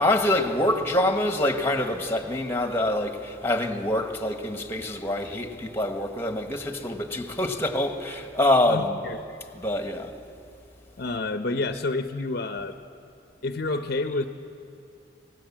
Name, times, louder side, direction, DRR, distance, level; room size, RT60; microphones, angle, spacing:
voice 1, 0.0-8.9 9.5-10.1, left 1 dB, 15° left, 1.5 m, -25 dB
voice 2, 8.7-9.2 11.0-12.8 13.4-14.3, left 2 dB, 60° left, 0.8 m, -29 dB
25.0 x 18.5 x 7.4 m
head